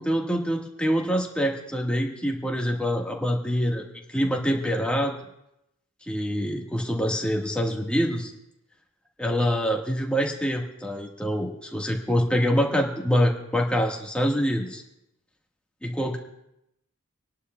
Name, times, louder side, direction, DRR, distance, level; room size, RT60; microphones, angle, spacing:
voice 1, 0.0-5.1 6.1-8.3 9.2-14.8 15.8-16.2, equal, 5° left, 0 dB, 1.5 m, -25 dB
27.0 x 11.5 x 2.3 m, 0.83 s
head